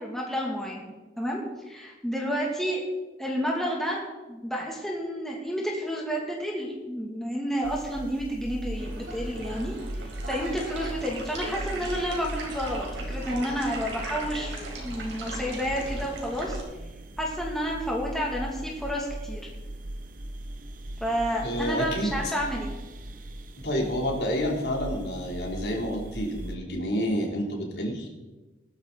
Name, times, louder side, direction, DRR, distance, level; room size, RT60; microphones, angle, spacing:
voice 1, 0.0-1.4 1.7-2.8 3.2-4.0 4.3-16.6 17.2-19.5 21.0-22.7, equal, ahead, -3 dB, 2.4 m, -30 dB
sound 1, 7.6-26.6, right 1 dB, 50° right, 1.0 m, -39 dB
sound 2, 8.7-16.6, right 2 dB, 90° right, 4.3 m, -38 dB
voice 2, 21.4-22.1 23.6-28.1, equal, 60° left, -1 dB, 3.4 m, -29 dB
18.5 x 13.0 x 4.1 m, 1.1 s
head